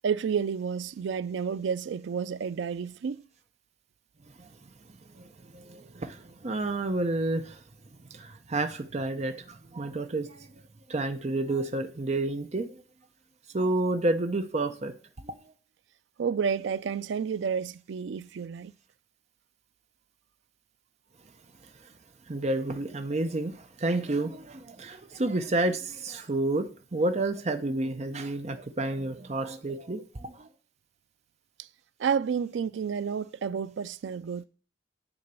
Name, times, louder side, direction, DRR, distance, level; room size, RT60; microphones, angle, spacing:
voice 1, 0.0-3.2 16.2-18.7 31.6-31.7 32.0-34.4, right 6 dB, 80° right, 0.4 m, -30 dB
voice 2, 5.1-7.6 8.1-10.6 10.9-12.8 13.5-14.9 15.2-15.4 21.8-21.9 22.3-30.5, right 2 dB, 35° right, 0.6 m, -30 dB
9.8 x 3.9 x 6.7 m
head